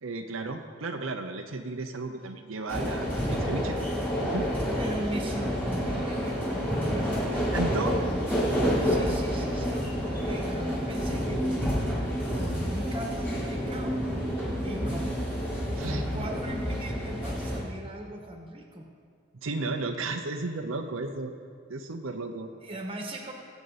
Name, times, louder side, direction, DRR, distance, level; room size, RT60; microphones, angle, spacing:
voice 1, 0.0-3.8 4.2-4.5 7.5-7.9 15.8-16.2 19.4-21.3 21.7-22.5, right 3 dB, 70° right, 4 dB, 0.8 m, -33 dB
sound 1, 2.7-17.6, equal, 10° left, 3.0 m, -29 dB
voice 2, 4.8-8.3 8.8-11.7 12.3-14.0 14.6-15.1 15.4-15.5 15.8-18.9 22.6-23.3, right 1 dB, 25° right, 2 dB, 1.4 m, -39 dB
20.5 x 8.3 x 4.2 m, 2.2 s
head